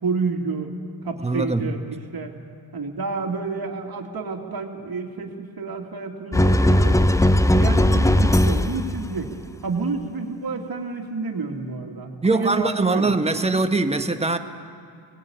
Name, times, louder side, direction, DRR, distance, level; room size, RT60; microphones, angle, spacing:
voice 1, 0.0-0.7 1.0-1.8 2.1-2.3 2.7-7.0 7.5-9.3 9.6-13.1, right 4 dB, 50° right, 2 dB, 2.6 m, -29 dB
voice 2, 1.2-1.7 12.2-14.4, right 3 dB, 15° right, 6 dB, 1.3 m, -22 dB
sound 1, 6.3-9.0, left 1 dB, 5° left, 0.6 m, -18 dB
18.5 x 18.5 x 8.9 m, 2.2 s
cardioid pair, 65°, 46 cm